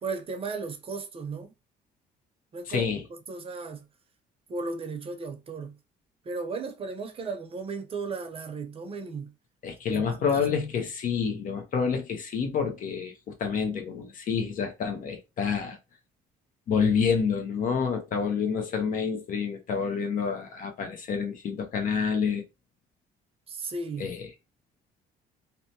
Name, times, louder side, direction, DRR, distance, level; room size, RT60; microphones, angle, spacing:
voice 1, 0.0-1.5 2.5-2.9 3.3-3.8 4.5-5.8 6.2-9.3 9.9-10.4 23.5-24.1, right 4 dB, 35° right, 0.7 m, -35 dB
voice 2, 2.7-3.0 9.6-15.8 16.7-22.4 24.0-24.3, left 6 dB, 55° left, 0.6 m, -28 dB
2.8 x 2.1 x 2.7 m
cardioid pair, 110°, 17 cm